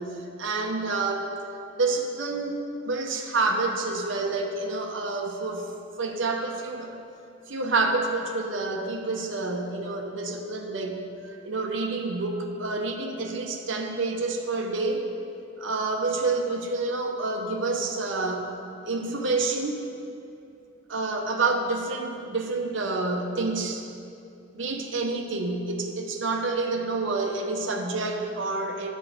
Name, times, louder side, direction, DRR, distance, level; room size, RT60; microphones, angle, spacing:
voice 1, 0.0-1.3 1.7-5.7 6.0-7.0 7.5-15.0 15.6-18.5 18.9-19.9 20.9-23.9 24.5-28.9, right 3 dB, 70° right, 2 dB, 0.8 m, -28 dB
8.6 x 7.1 x 5.0 m, 2.6 s
head